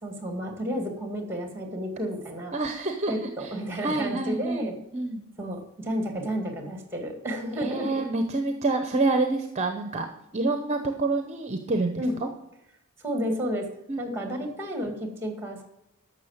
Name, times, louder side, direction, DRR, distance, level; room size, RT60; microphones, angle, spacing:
voice 1, 0.0-2.5 3.1-4.8 5.4-8.1 12.0-12.2 13.0-13.7 14.0-15.6, equal, 10° right, 4 dB, 2.1 m, -31 dB
voice 2, 2.5-3.5 3.8-5.2 7.6-10.1 10.3-12.3 13.9-14.4, right 2 dB, 30° right, 6 dB, 0.8 m, -28 dB
11.5 x 6.5 x 7.3 m, 0.88 s
head